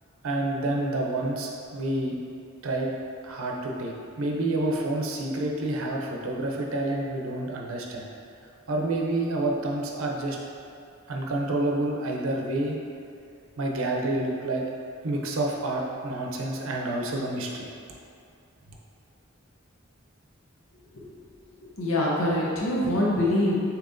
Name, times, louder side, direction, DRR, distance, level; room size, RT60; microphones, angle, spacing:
voice 1, 0.2-2.2 2.6-2.9 3.2-8.1 8.7-10.4 11.1-12.8 13.6-14.6 15.0-17.7, right 2 dB, 85° right, -1 dB, 0.6 m, -28 dB
voice 2, 21.7-23.6, left 1 dB, 80° left, -4 dB, 0.7 m, -24 dB
6.9 x 2.9 x 2.6 m, 2.4 s
head